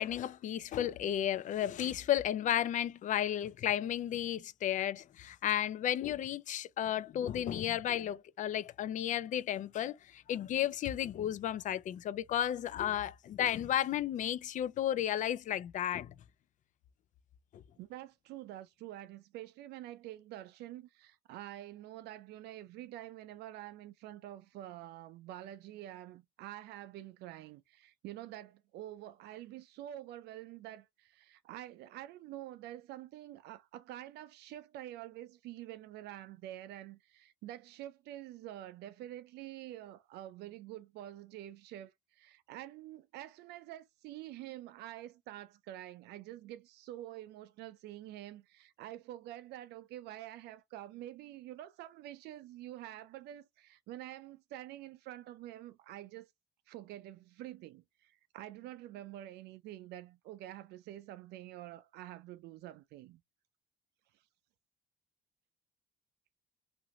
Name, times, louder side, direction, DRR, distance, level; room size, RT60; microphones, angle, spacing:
voice 1, 0.0-16.1 17.5-17.6, left 11 dB, 50° left, 0.4 m, -33 dB
voice 2, 17.8-56.3 56.7-63.2, right 13 dB, 80° right, 0.4 m, -47 dB
2.9 x 2.6 x 2.7 m
cardioid pair, 110°, 17 cm